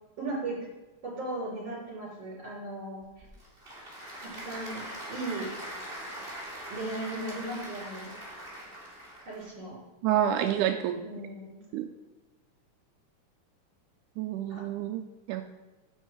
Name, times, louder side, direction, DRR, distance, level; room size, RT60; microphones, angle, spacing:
voice 1, 0.2-0.6 1.0-3.3 4.2-5.5 6.7-8.1 9.3-9.8 10.4-10.6 11.0-11.6 14.5-14.6, right 2 dB, 40° right, -4 dB, 4.9 m, -37 dB
Applause / Crowd, 3.0-9.5, right 1 dB, 20° right, 2.6 m, -42 dB
voice 2, 10.0-11.1 11.7-11.9 14.2-15.4, right 10 dB, 85° right, 6 dB, 2.1 m, -28 dB
10.0 x 8.4 x 4.5 m, 1.2 s
omnidirectional pair, 3.5 m